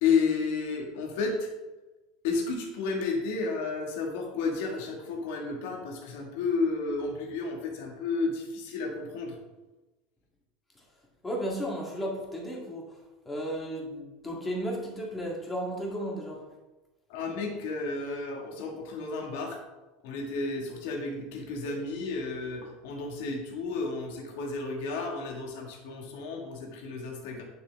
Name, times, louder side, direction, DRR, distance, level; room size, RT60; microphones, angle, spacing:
voice 1, 0.0-1.5 2.2-9.4 17.1-19.6 20.0-27.4, left 4 dB, 65° left, 1 dB, 2.0 m, -32 dB
voice 2, 11.2-12.8 13.3-16.4, equal, 10° left, -2 dB, 1.9 m, -34 dB
9.7 x 6.9 x 3.6 m, 1.1 s
supercardioid pair, 175°, 0 cm